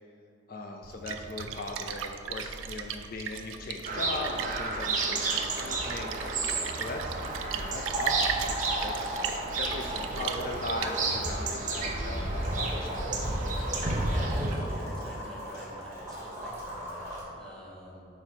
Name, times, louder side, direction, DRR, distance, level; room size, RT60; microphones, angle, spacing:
voice 1, 0.5-7.2 7.5-13.1, left 2 dB, 45° left, 2 dB, 0.3 m, -39 dB
Splash splatter, 0.8-11.4, right 7 dB, 90° right, 0.4 m, -38 dB
sound 1, 3.8-14.6, right 2 dB, 40° right, 0.7 m, -32 dB
sound 2, 6.9-17.2, right 1 dB, 15° right, 1.5 m, -38 dB
voice 2, 13.9-18.1, equal, 5° left, -5 dB, 1.0 m, -46 dB
4.8 x 4.5 x 5.7 m, 2.7 s
head